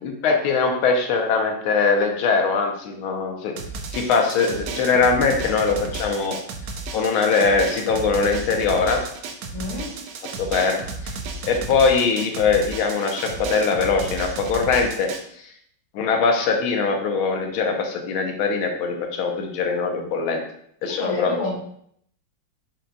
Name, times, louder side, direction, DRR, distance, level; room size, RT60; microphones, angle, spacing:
voice 1, 0.0-3.5 3.9-6.3 6.9-9.0 10.4-10.8 11.0-11.1 11.4-15.1 15.9-20.4 20.8-21.4, left 4 dB, 80° left, 3 dB, 1.5 m, -21 dB
Drum, 3.6-15.2, right 3 dB, 75° right, 1.0 m, -33 dB
voice 2, 9.5-10.0 20.8-21.6, left 3 dB, 60° left, -2 dB, 0.4 m, -29 dB
5.4 x 2.2 x 3.7 m, 0.67 s
omnidirectional pair, 2.3 m